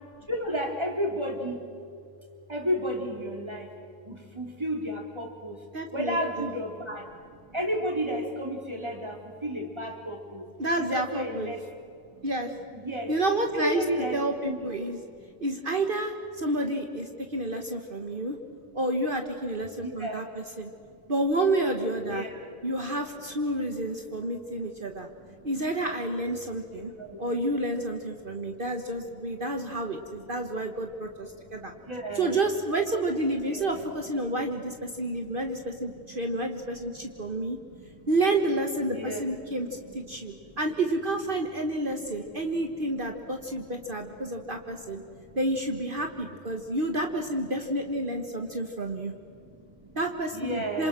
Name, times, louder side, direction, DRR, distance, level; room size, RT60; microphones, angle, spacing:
voice 1, 0.3-1.6 2.5-3.7 4.0-5.6 5.9-10.5 10.8-11.6 12.1-12.2 12.7-13.1 13.5-14.6 15.2-15.4 19.8-20.2 20.9-21.0 22.1-22.5 24.8-25.5 26.7-27.3 28.5-28.8 29.7-29.8 30.4-30.7 31.3-32.4 33.5-33.8 35.0-36.3 36.6-38.1 38.9-40.5 42.8-42.9 43.6-45.3 46.5-46.6 48.6-48.7 49.1-50.0 50.3-50.9, equal, 20° right, 1 dB, 3.7 m, -34 dB
voice 2, 5.7-6.5 10.6-11.5 12.2-12.5 13.1-13.8 14.1-15.0 15.4-18.4 18.7-20.7 21.1-22.3 22.6-25.1 25.4-26.9 27.2-31.7 32.1-37.6 38.1-45.0 45.3-49.1 49.9-50.9, right 1 dB, 45° right, 4 dB, 1.6 m, -29 dB
27.5 x 26.5 x 6.3 m, 2.4 s
omnidirectional pair, 1.3 m